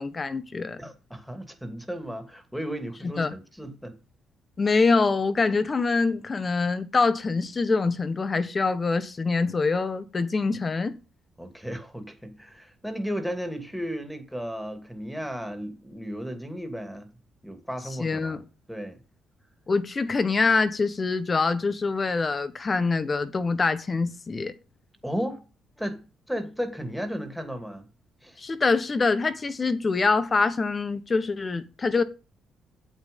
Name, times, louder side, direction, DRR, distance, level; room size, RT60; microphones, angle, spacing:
voice 1, 0.0-0.8 3.2-3.3 4.6-11.0 18.0-18.4 19.7-24.6 28.4-32.0, left 4 dB, 35° left, 1.3 m, -25 dB
voice 2, 0.8-3.9 11.4-17.1 17.4-18.4 18.7-19.0 25.0-25.4 25.8-26.0 26.3-27.8 28.2-28.4, equal, ahead, 2.5 m, -34 dB
8.9 x 8.1 x 5.4 m
cardioid pair, 90°, 0 cm